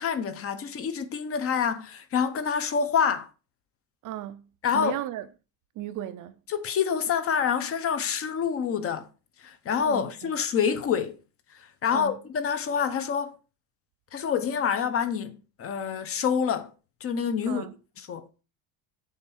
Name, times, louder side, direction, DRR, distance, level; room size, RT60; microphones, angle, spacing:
voice 1, 0.0-3.3 4.6-5.0 6.5-9.1 9.4-11.2 11.5-13.4 14.1-16.7 17.0-17.7 18.0-18.2, left 7 dB, 30° left, 0.7 m, -27 dB
voice 2, 4.0-4.4 4.7-5.3 5.8-6.4 9.8-10.3 11.9-12.2 17.5-17.7, right 13 dB, 45° right, 0.5 m, -35 dB
7.3 x 4.4 x 6.1 m
cardioid pair, 170°, 45 cm